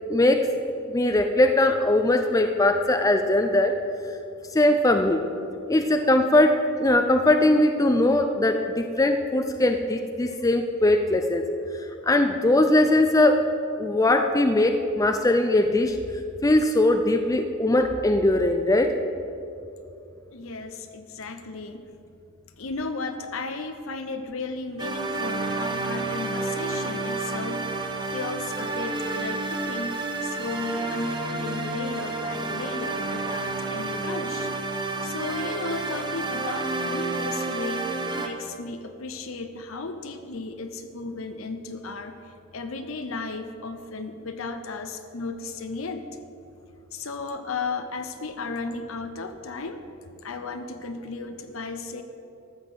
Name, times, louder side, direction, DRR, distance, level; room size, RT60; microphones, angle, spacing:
voice 1, 0.1-0.5 0.9-3.8 4.5-5.2 5.7-11.4 12.0-13.4 13.8-16.0 16.4-19.0, left 1 dB, 15° left, 6 dB, 0.4 m, -20 dB
voice 2, 20.3-21.9 22.6-34.5 35.0-46.0 46.9-49.9 50.2-52.0, left 3 dB, 70° left, 7 dB, 0.8 m, -35 dB
sound 1, 24.8-38.3, right 3 dB, 20° right, 0.9 m, -30 dB
13.0 x 6.5 x 7.9 m, 2.7 s
head